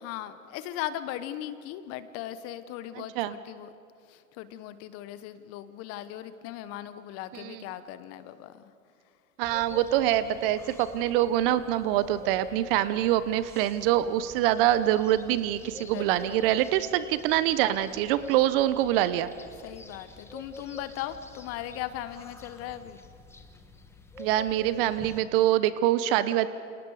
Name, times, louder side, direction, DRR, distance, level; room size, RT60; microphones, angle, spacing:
voice 1, 0.0-3.7 4.1-8.6 15.9-16.6 19.6-23.0, left 12 dB, 30° left, 13 dB, 1.1 m, -38 dB
voice 2, 2.9-3.4 7.3-7.6 9.4-19.3 24.2-26.5, right 13 dB, 40° right, 14 dB, 1.0 m, -25 dB
sound 1, 9.4-25.2, left 2 dB, 5° left, 1.4 m, -48 dB
29.0 x 28.0 x 5.0 m, 2.4 s
hypercardioid pair, 120°, 44 cm